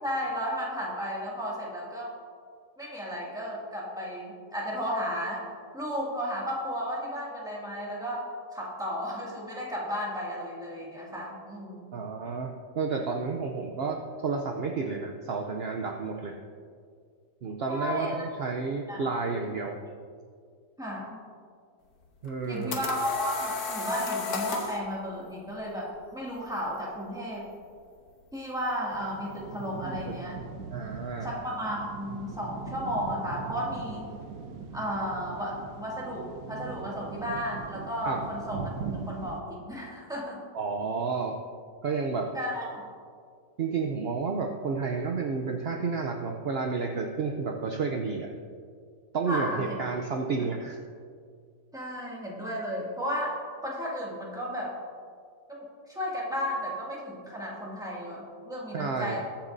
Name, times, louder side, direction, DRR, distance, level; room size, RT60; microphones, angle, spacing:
voice 1, 0.0-2.1 2.8-5.4 5.7-11.9 17.7-18.3 18.9-19.0 20.8-21.2 22.5-27.5 28.3-30.4 31.2-34.1 34.7-38.6 38.9-40.4 42.3-42.8 49.3-49.8 51.7-54.8 55.5-59.2, equal, ahead, -5 dB, 2.1 m, -34 dB
voice 2, 11.9-16.4 17.4-19.8 22.2-22.8 29.8-30.2 30.7-31.3 38.1-38.2 40.5-41.4 41.8-42.3 43.6-48.3 49.1-50.8 58.7-59.2, right 4 dB, 55° right, 2 dB, 0.7 m, -31 dB
sound 1, 22.3-24.8, left 4 dB, 70° left, 1.6 m, -32 dB
sound 2, 28.9-39.4, right 5 dB, 80° right, 1.3 m, -40 dB
21.5 x 7.2 x 2.7 m, 2.1 s
omnidirectional pair, 1.7 m